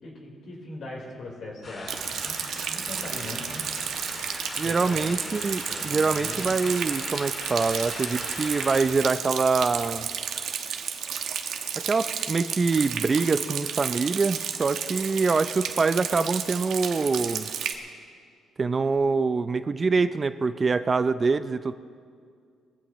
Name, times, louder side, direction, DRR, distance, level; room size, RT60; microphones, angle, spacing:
voice 1, 0.0-2.4 2.7-3.6 4.6-5.3 5.7-6.5, left 2 dB, 65° left, -1 dB, 4.1 m, -40 dB
sound 1, 1.6-8.8, left 2 dB, 40° left, 2.6 m, -39 dB
Rain, 1.9-17.7, right 8 dB, 75° right, 1.1 m, -32 dB
voice 2, 4.6-10.1 11.8-17.5 18.6-21.7, right 4 dB, 35° right, 12 dB, 0.5 m, -25 dB
21.0 x 15.5 x 3.1 m, 2.2 s
cardioid pair, 90°, 0 cm